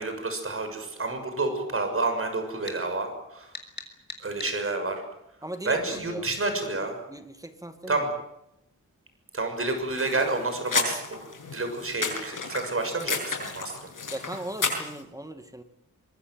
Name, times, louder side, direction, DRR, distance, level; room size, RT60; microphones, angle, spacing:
voice 1, 0.0-3.5 4.2-5.0 5.6-7.0 7.9-8.1 9.3-11.2 11.5-13.9, right 3 dB, 45° right, 6 dB, 6.5 m, -29 dB
sound 1, 2.7-2.8 3.5-4.6, left 3 dB, 35° left, 3.9 m, -39 dB
voice 2, 5.4-6.3 6.7-8.0 14.1-15.6, right 1 dB, 10° right, 8 dB, 2.0 m, -38 dB
sound 2, 9.9-15.0, left 4 dB, 85° left, 7.4 m, -32 dB
24.5 x 22.0 x 7.9 m, 0.82 s
wide cardioid pair, 145°, 31 cm